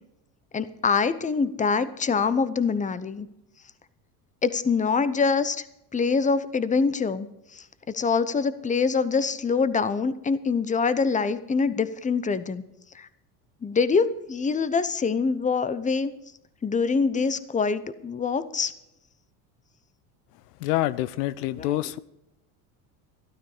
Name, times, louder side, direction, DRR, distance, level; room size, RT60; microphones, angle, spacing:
voice 1, 0.5-3.3 4.4-5.6 5.9-12.6 12.9-13.1 13.6-16.1 16.6-18.7 21.6-21.8, left 5 dB, 15° left, 15 dB, 0.8 m, -25 dB
voice 2, 20.6-22.0, left 15 dB, 90° left, 18 dB, 0.7 m, -26 dB
12.5 x 12.5 x 5.0 m, 0.87 s
supercardioid pair, 95°, 46 cm